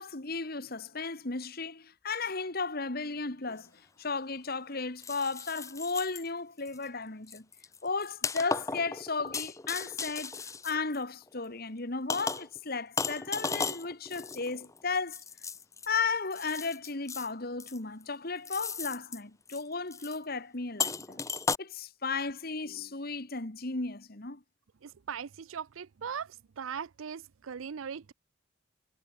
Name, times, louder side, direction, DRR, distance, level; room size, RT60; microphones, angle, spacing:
voice 1, 0.0-7.5 7.8-15.2 15.9-21.2 21.6-24.4, left 4 dB, 50° left, 1.8 m, -35 dB
sound 1, 3.5-3.6 5.0-6.3 6.7-6.9 7.3-11.4 12.1-12.6 13.0-15.9 16.3-17.3 17.6-18.0 18.4-19.2 19.5-19.6 19.9-20.2 20.8-21.6, left 4 dB, 15° left, 0.7 m, -36 dB
voice 2, 24.8-26.3 26.6-28.1, right 7 dB, 80° right, 0.5 m, -39 dB
head